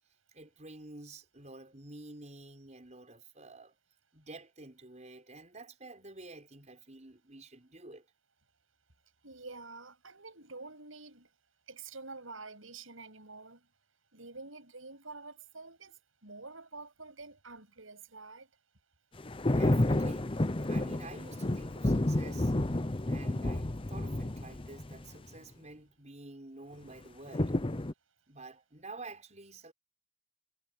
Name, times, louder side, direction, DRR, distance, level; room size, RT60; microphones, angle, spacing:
voice 1, 0.3-3.8 4.1-8.1 19.4-22.5 23.1-27.5 28.3-29.7, right 2 dB, 35° right, 6.0 m, -49 dB
voice 2, 9.2-11.3 11.7-13.6 14.1-18.5, right 3 dB, 80° right, 7.6 m, -48 dB
sound 1, 19.2-25.2 27.3-27.9, left 1 dB, 25° left, 0.8 m, -30 dB
head